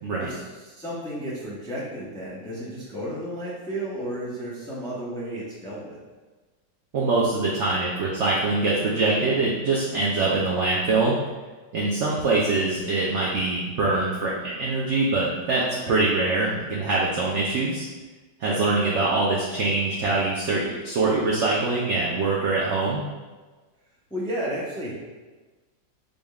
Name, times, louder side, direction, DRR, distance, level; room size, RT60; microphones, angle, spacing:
voice 1, 0.2-6.0 15.9-16.0 18.5-18.6 24.1-24.9, right 1 dB, 5° left, -7 dB, 0.3 m, -33 dB
voice 2, 6.9-11.2 11.7-17.9 18.4-23.0, right 3 dB, 80° right, -4 dB, 0.6 m, -24 dB
5.2 x 3.5 x 2.3 m, 1.3 s
omnidirectional pair, 1.9 m